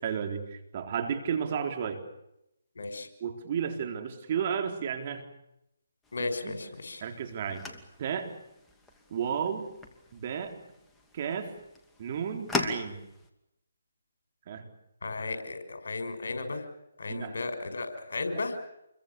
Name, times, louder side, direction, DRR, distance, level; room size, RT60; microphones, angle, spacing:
voice 1, 0.0-2.0 3.2-5.2 6.2-6.6 7.0-7.6 8.0-8.3 9.1-9.7 10.1-10.6 11.1-11.5 12.0-13.0 14.5-14.7 17.1-17.4, right 7 dB, 40° right, 5 dB, 4.0 m, -33 dB
voice 2, 2.8-3.1 6.1-7.0 15.0-16.7 17.0-18.6, left 3 dB, 75° left, 7 dB, 6.0 m, -34 dB
sound 1, 6.0-13.3, left 3 dB, 5° left, 2.6 m, -40 dB
28.0 x 23.0 x 7.1 m, 0.82 s
figure-of-eight pair, 150°, 0 cm